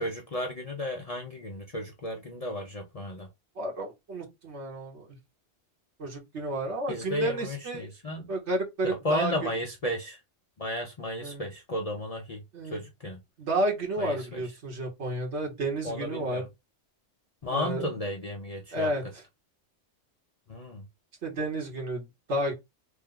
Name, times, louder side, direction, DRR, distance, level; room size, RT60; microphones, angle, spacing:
voice 1, 0.0-3.3 6.9-8.3 9.0-10.2 10.6-13.2 14.0-14.5 15.8-16.5 17.4-18.9 20.5-20.9, left 1 dB, 40° left, 0.6 m, -34 dB
voice 2, 3.6-5.2 6.0-7.9 8.3-9.5 11.2-11.4 12.5-12.8 13.4-16.4 17.5-17.8 18.7-19.0 21.2-22.5, right 1 dB, 75° right, 1.5 m, -31 dB
3.4 x 2.2 x 3.6 m
omnidirectional pair, 1.2 m